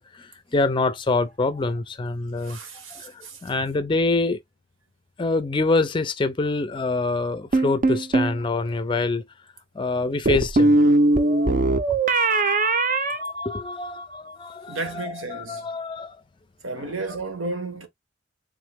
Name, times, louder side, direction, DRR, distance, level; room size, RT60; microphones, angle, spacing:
voice 1, 0.0-2.6 2.9-4.4 5.2-9.2 9.8-10.8 13.3-16.2 16.8-16.9, left 3 dB, 25° left, 0.4 m, -26 dB
voice 2, 2.4-3.4 14.7-15.7 16.6-17.9, right 3 dB, 90° right, 1.1 m, -33 dB
sound 1, 7.5-8.4 10.3-14.0, right 2 dB, 40° right, 0.5 m, -20 dB
3.6 x 3.0 x 3.4 m
head